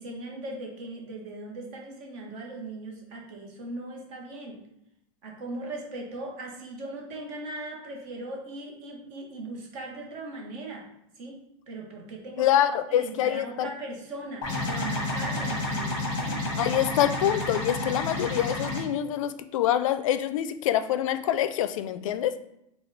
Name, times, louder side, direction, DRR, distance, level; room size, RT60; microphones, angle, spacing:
voice 1, 0.0-4.6 5.2-10.9 11.2-12.5 12.9-16.4, right 2 dB, 35° right, 0 dB, 0.9 m, -39 dB
voice 2, 12.4-13.7 16.6-22.4, left 11 dB, 80° left, 12 dB, 0.4 m, -25 dB
sound 1, 14.4-18.8, left 1 dB, 30° left, 0.9 m, -30 dB
4.2 x 2.3 x 3.9 m, 0.79 s
supercardioid pair, 180°, 17 cm